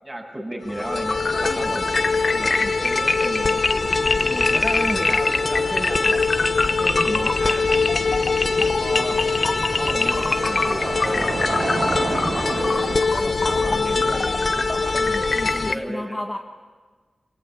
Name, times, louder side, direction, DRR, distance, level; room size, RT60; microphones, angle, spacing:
voice 1, 0.0-1.9 2.3-2.5 2.8-3.6 4.2-6.2 6.8-7.7 8.6-9.2 9.7-11.3 12.0-12.8 13.1-15.0 15.6-16.2, right 1 dB, 25° right, -1 dB, 7.8 m, -33 dB
sound 1, 0.6-12.8 13.6-15.6, right 1 dB, 45° right, 7.9 m, -46 dB
sound 2, 0.7-15.7, left 3 dB, 55° left, 1.1 m, -22 dB
sound 3, 3.1-3.9 4.2-13.1, right 3 dB, 65° right, 1.4 m, -32 dB
voice 2, 13.2-14.0 14.9-16.4, left 1 dB, 20° left, 1 dB, 2.0 m, -34 dB
25.5 x 18.5 x 9.2 m, 1.4 s
cardioid pair, 45°, 0 cm